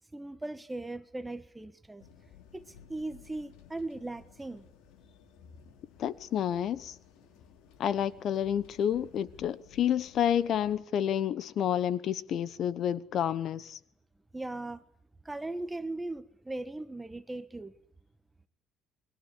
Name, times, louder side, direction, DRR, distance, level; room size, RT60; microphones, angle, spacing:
voice 1, 0.1-2.0 2.5-4.7 14.3-14.8 15.2-17.8, right 2 dB, 10° right, 1.4 m, -38 dB
sound 1, 2.0-10.8, left 8 dB, 90° left, 3.5 m, -57 dB
voice 2, 6.0-6.9 7.8-13.8, left 9 dB, 50° left, 1.1 m, -29 dB
29.5 x 22.0 x 8.5 m
cardioid pair, 135°, 0 cm